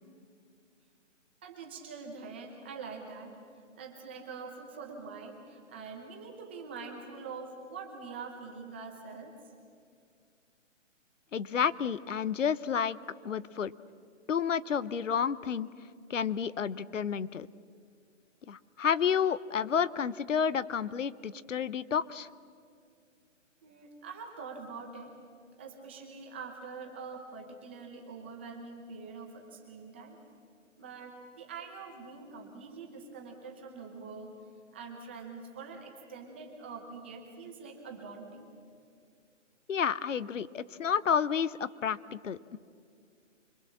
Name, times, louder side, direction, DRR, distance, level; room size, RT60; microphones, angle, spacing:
voice 1, 1.4-3.3 3.8-9.3 23.6-25.1 25.6-30.2 30.8-34.3 34.7-38.5, right 4 dB, 10° right, 1 dB, 0.8 m, -44 dB
voice 2, 11.3-13.0 13.2-13.7 14.3-15.7 16.1-17.5 18.5-22.3 39.7-42.6, left 7 dB, 75° left, 18 dB, 0.9 m, -30 dB
25.5 x 22.0 x 7.4 m, 2.3 s
hypercardioid pair, 170°, 38 cm